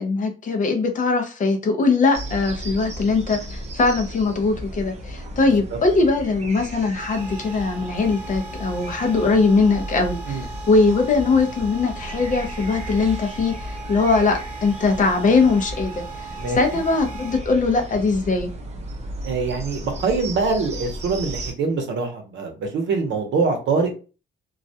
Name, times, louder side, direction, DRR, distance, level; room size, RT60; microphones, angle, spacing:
voice 1, 0.0-16.3 16.6-18.5, left 3 dB, 40° left, 0.5 m, -21 dB
sound 1, 2.1-21.5, right 1 dB, 35° right, 0.5 m, -35 dB
sound 2, 7.0-17.4, right 3 dB, 10° right, 0.9 m, -39 dB
voice 2, 19.2-23.9, right 4 dB, 65° right, 0.7 m, -24 dB
2.3 x 2.1 x 2.7 m
cardioid pair, 145°, 20 cm